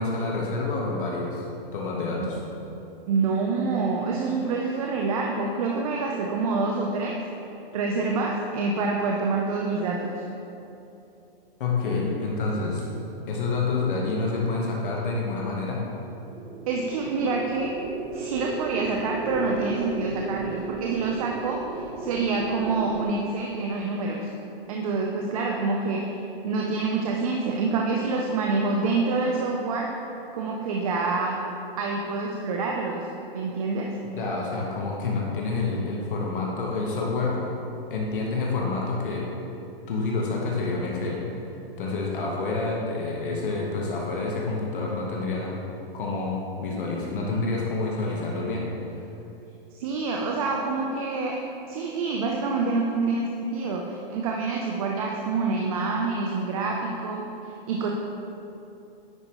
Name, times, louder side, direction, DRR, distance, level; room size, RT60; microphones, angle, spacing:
voice 1, 0.0-1.5 1.7-2.4 11.6-12.9 13.3-15.9 34.2-37.4 37.9-39.3 39.9-41.2 41.8-45.6 45.9-48.7, left 3 dB, 60° left, -2 dB, 1.2 m, -28 dB
voice 2, 3.1-7.2 7.7-10.2 16.7-17.7 18.1-24.3 24.7-26.2 26.4-29.9 30.3-31.4 31.8-33.1 33.3-34.0 49.7-51.4 51.7-57.9, right 3 dB, 40° right, 0 dB, 0.6 m, -27 dB
sound 1, 16.0-23.0, right 3 dB, 55° right, 1.3 m, -35 dB
9.6 x 5.0 x 3.0 m, 2.8 s
hypercardioid pair, 150°, 29 cm